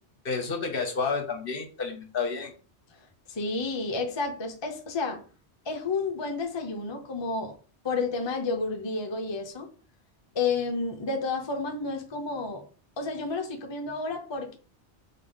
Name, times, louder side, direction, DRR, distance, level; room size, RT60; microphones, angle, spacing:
voice 1, 0.2-2.5, left 4 dB, 55° left, 1.0 m, -30 dB
voice 2, 3.3-5.2 5.7-7.5 7.8-9.7 10.3-12.6 13.0-14.6, left 3 dB, 30° left, 0.6 m, -30 dB
3.7 x 3.6 x 3.9 m
omnidirectional pair, 1.2 m